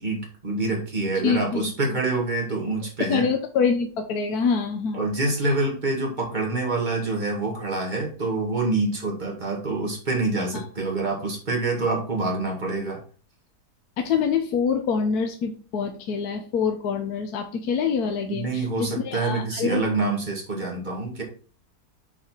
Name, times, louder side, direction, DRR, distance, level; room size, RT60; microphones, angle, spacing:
voice 1, 0.0-3.3 4.9-13.0 18.3-21.2, right 3 dB, 30° right, -2 dB, 2.3 m, -26 dB
voice 2, 1.2-1.7 3.0-5.1 10.5-10.7 14.0-19.8, left 6 dB, 75° left, 5 dB, 1.3 m, -25 dB
7.1 x 4.2 x 4.4 m, 0.39 s
omnidirectional pair, 1.7 m